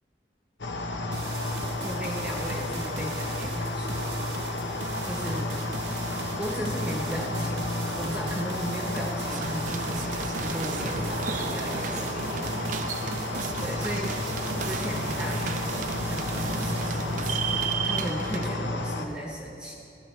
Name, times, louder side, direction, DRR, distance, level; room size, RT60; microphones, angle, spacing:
sound 1, 0.6-19.1, left 2 dB, 90° left, 0.8 m, -32 dB
sound 2, 1.1-17.7, right 5 dB, 85° right, 0.6 m, -40 dB
voice 1, 1.8-4.1 5.1-5.7 6.4-12.9 13.6-14.3 14.6-17.1 17.8-19.7, equal, 5° right, -2 dB, 1.0 m, -36 dB
sound 3, 9.3-18.5, right 6 dB, 45° right, 0.4 m, -34 dB
14.0 x 11.5 x 3.3 m, 2.8 s
head